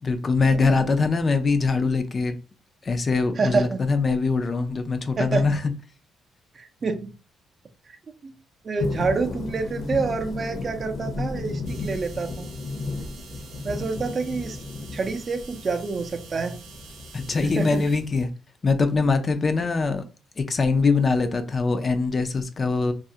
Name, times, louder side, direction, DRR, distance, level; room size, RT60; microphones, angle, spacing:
voice 1, 0.0-2.4 2.8-5.7 17.1-18.3 18.6-20.0 20.4-22.9, left 4 dB, 35° left, 0.3 m, -23 dB
voice 2, 3.4-3.8 5.2-5.5 6.5-7.1 8.2-8.3 8.6-12.5 13.6-14.6 14.9-16.6 17.4-17.9, right 4 dB, 40° right, 0.4 m, -27 dB
sound 1, 8.8-18.2, left 3 dB, 60° left, 0.7 m, -34 dB
sound 2, 11.6-18.0, right 6 dB, 90° right, 0.5 m, -48 dB
2.3 x 2.0 x 2.6 m
cardioid pair, 90°, 0 cm